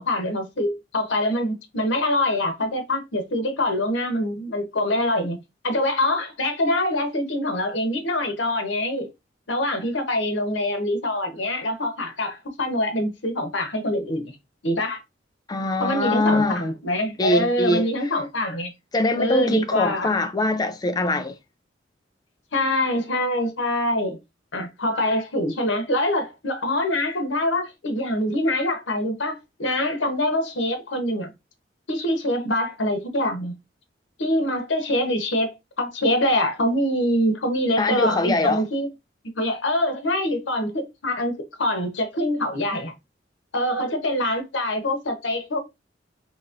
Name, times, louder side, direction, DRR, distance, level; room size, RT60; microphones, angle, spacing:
voice 1, 0.0-5.4 5.6-9.1 9.5-14.3 14.6-15.0 15.8-18.7 19.2-20.1 22.5-24.2 24.5-31.3 31.9-33.5 34.2-38.9 39.4-42.9 43.5-45.6, left 1 dB, 90° left, 1.0 m, -24 dB
voice 2, 15.5-16.6 17.2-17.9 18.9-21.3 37.8-38.6, left 2 dB, 20° left, 0.3 m, -23 dB
4.0 x 2.9 x 2.5 m
head